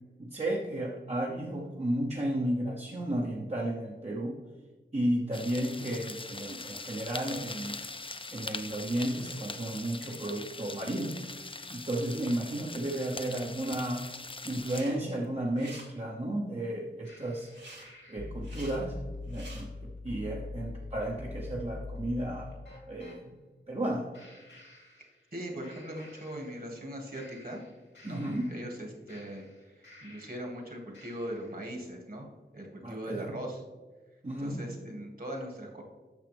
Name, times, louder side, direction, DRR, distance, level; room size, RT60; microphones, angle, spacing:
voice 1, 0.2-4.4 4.9-7.8 8.3-11.2 11.7-14.0 14.4-17.5 18.1-19.0 19.3-22.5 22.9-23.3 23.7-24.1 28.0-28.5 32.8-33.3 34.2-34.6, right 1 dB, 35° right, -3 dB, 1.0 m, -33 dB
sound 1, 5.3-14.8, left 3 dB, 25° left, 0.5 m, -42 dB
sound 2, 14.6-15.0 15.2-15.9 17.5-17.8 18.3-18.8 19.2-19.6, right 2 dB, 65° right, 2.6 m, -48 dB
sound 3, 17.1-23.2 24.1-25.4 25.6-26.8 27.1-30.6 30.9-31.6, left 2 dB, 75° left, 2.6 m, -44 dB
voice 2, 25.3-27.6 28.0-28.2 28.5-32.3 32.5-33.6 34.4-35.8, right 1 dB, 50° right, 0 dB, 2.0 m, -40 dB
9.3 x 6.4 x 3.5 m, 1.3 s
wide cardioid pair, 55°, 19 cm